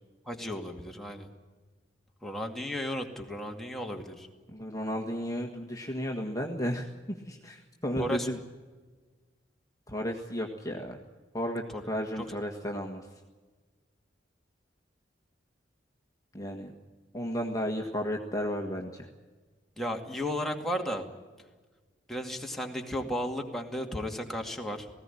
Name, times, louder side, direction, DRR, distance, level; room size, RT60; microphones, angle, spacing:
voice 1, 0.3-1.3 2.2-4.3 8.0-8.3 11.7-11.8 12.2-12.3 19.8-21.1 22.1-24.9, equal, ahead, 1 dB, 2.3 m, -34 dB
voice 2, 4.5-8.4 9.9-11.0 11.3-13.1 16.3-16.7 17.1-19.1, equal, 20° left, 1 dB, 1.7 m, -33 dB
19.0 x 16.5 x 9.9 m, 1.4 s
head